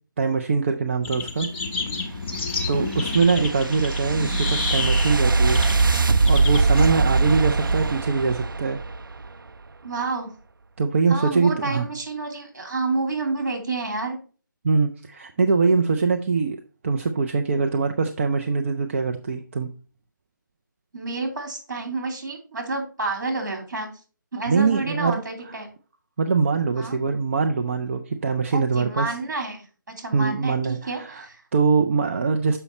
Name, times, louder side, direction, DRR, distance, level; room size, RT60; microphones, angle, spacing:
voice 1, 0.2-1.5 2.7-5.6 6.2-8.8 10.8-11.9 14.6-16.6 16.8-19.7 24.5-25.1 26.2-29.2 30.1-31.2 31.5-32.6, right 4 dB, 35° right, 5 dB, 0.5 m, -23 dB
sound 1, 1.0-8.0, left 4 dB, 35° left, 1.5 m, -30 dB
sound 2, 2.1-9.3, right 3 dB, 80° right, 0.6 m, -22 dB
voice 2, 9.8-10.3 11.1-14.2 20.9-23.9 24.3-25.7 26.7-27.0 28.5-29.6 30.0-31.4, right 3 dB, 60° right, 3 dB, 3.0 m, -29 dB
6.9 x 5.5 x 4.3 m, 0.37 s
figure-of-eight pair, 155°, 11 cm